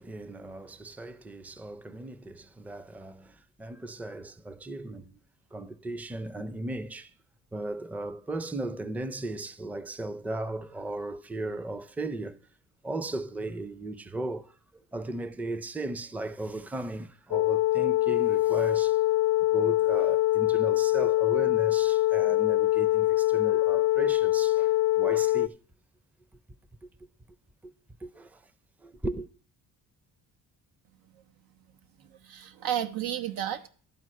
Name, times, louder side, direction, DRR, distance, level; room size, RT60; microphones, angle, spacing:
voice 1, 0.0-5.1 5.5-7.1 7.5-12.4 12.8-14.5 14.9-19.0 19.5-25.6 26.8-26.9 27.6-27.7 28.0-28.4 28.8-29.3, right 2 dB, 5° right, 0.5 m, -36 dB
sound 1, 17.3-25.5, left 16 dB, 60° left, 0.4 m, -24 dB
voice 2, 32.0-33.7, right 10 dB, 90° right, 1.1 m, -32 dB
12.0 x 4.6 x 7.5 m
cardioid pair, 125°, 35 cm